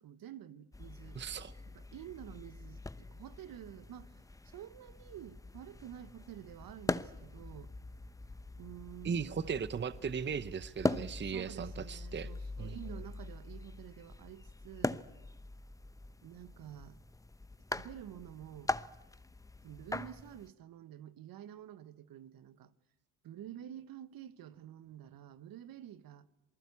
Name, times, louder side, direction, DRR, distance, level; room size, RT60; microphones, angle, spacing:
voice 1, 0.0-1.2 1.7-7.7 8.6-9.4 10.9-15.1 16.2-17.0 17.7-18.7 19.6-22.7 23.2-26.3, right 11 dB, 60° right, 1.3 m, -50 dB
sound 1, 0.7-20.5, left 2 dB, 10° left, 0.8 m, -42 dB
voice 2, 1.1-1.5 9.0-12.3 12.6-13.0, right 6 dB, 30° right, 0.9 m, -37 dB
27.5 x 20.0 x 8.5 m
hypercardioid pair, 60°, 39 cm